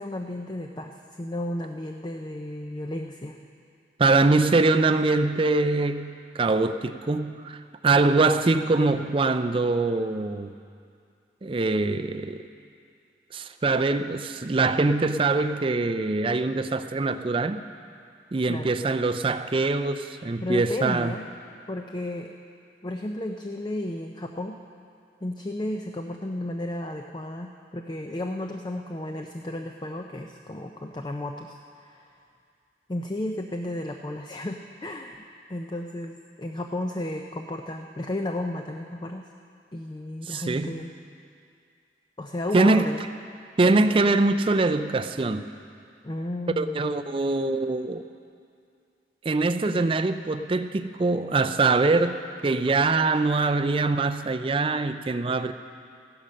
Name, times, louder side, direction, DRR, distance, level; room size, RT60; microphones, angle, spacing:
voice 1, 0.0-3.4 18.5-18.7 20.4-21.3 21.7-22.3 22.8-24.6 25.2-32.2 32.9-35.2 35.5-39.3 39.7-40.9 42.2-43.0 46.0-46.8, left 1 dB, 25° left, 4 dB, 0.5 m, -33 dB
voice 2, 4.0-10.5 11.4-12.4 13.3-17.6 18.3-21.1 40.3-40.8 42.5-42.9 43.6-45.5 46.6-48.0 49.2-55.5, right 3 dB, 30° right, 10 dB, 0.4 m, -23 dB
15.0 x 11.0 x 6.3 m, 2.4 s
head